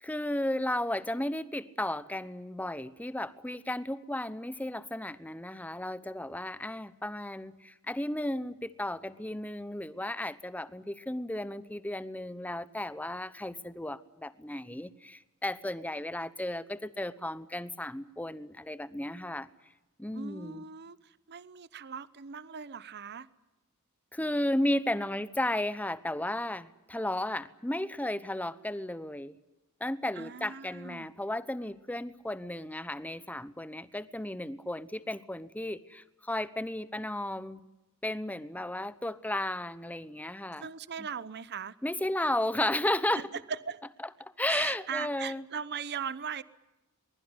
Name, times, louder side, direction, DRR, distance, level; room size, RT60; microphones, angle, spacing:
voice 1, 0.0-19.5 20.0-20.6 24.1-29.4 29.8-37.6 38.0-40.7 41.0-41.1 41.8-43.3 44.2-45.4, left 1 dB, 5° left, 15 dB, 0.9 m, -34 dB
voice 2, 20.1-23.3 30.2-31.1 40.6-41.7 43.1-43.8 44.5-46.4, right 7 dB, 50° right, 16 dB, 0.9 m, -39 dB
23.0 x 21.5 x 9.8 m, 1.0 s
head